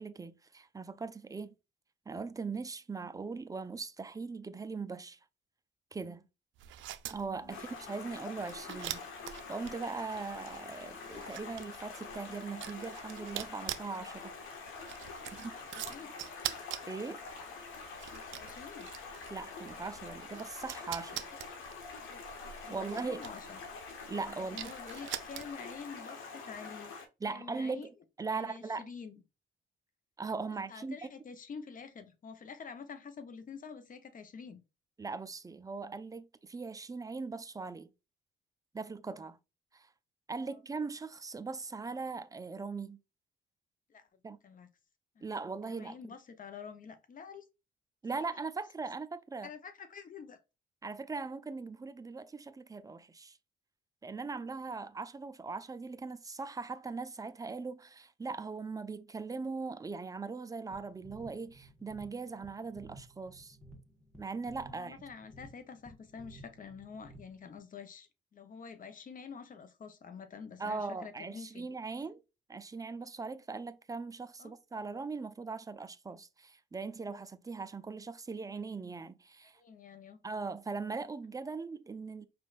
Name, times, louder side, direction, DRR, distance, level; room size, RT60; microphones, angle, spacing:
voice 1, 0.0-1.5 2.1-5.2 5.9-6.3 7.1-9.0 9.5-14.3 15.0-15.1 15.4-15.5 16.9-17.2 19.3-21.2 22.7-23.2 24.1-24.6 27.2-27.9 28.2-28.9 30.2-31.1 35.0-37.9 38.7-39.4 39.7-39.9 40.3-43.0 44.2-44.4 45.2-46.0 48.0-49.5 50.8-53.4 54.0-63.6 64.2-65.0 70.6-72.2 72.5-79.6 80.2-82.3, right 4 dB, 15° right, 0.5 m, -40 dB
sound 1, 6.6-25.8, right 12 dB, 75° right, 0.5 m, -45 dB
Stream, 7.5-27.1, left 4 dB, 85° left, 1.1 m, -46 dB
voice 2, 15.7-16.1 18.1-18.9 21.1-21.4 22.1-22.2 22.6-23.6 24.4-26.9 27.2-27.9 28.3-29.2 30.5-34.6 40.5-40.6 43.9-44.1 44.4-44.7 45.2-45.4 45.7-47.5 49.4-50.4 64.7-71.7 74.4-74.5 79.6-80.2, left 6 dB, 45° left, 0.9 m, -48 dB
sound 2, 60.7-67.6, right 1 dB, 5° left, 1.5 m, -55 dB
5.1 x 3.4 x 2.4 m
cardioid pair, 90°, 20 cm